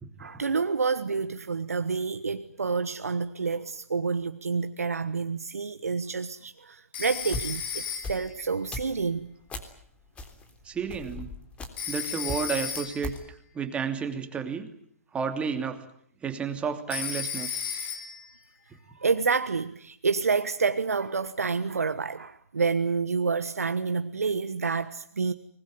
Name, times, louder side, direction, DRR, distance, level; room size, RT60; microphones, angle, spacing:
voice 1, 0.2-9.3 19.0-25.3, right 5 dB, 80° right, 1.3 m, -28 dB
Telephone, 6.9-8.4 11.8-13.2 16.9-18.3, left 7 dB, 45° left, 4.7 m, -34 dB
sound 1, 7.0-9.8 10.2-12.0 12.3-13.2, left 2 dB, 15° left, 3.5 m, -38 dB
voice 2, 10.7-11.3 11.9-13.1 13.5-14.7 15.1-15.8 16.2-17.8, right 6 dB, 15° right, 2.8 m, -31 dB
24.5 x 20.5 x 9.5 m
figure-of-eight pair, 125°, 8 cm